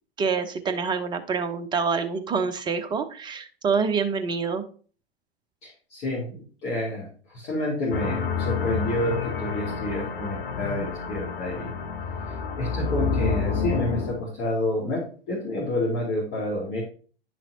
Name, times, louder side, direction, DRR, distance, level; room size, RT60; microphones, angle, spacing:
voice 1, 0.2-4.6, right 5 dB, 15° right, 7 dB, 0.8 m, -26 dB
voice 2, 5.6-11.8 12.6-16.8, left 1 dB, 35° left, -4 dB, 2.5 m, -29 dB
sound 1, 7.9-14.2, left 5 dB, 55° left, 1.2 m, -29 dB
10.0 x 6.1 x 2.8 m, 0.40 s
figure-of-eight pair, 100°, 31 cm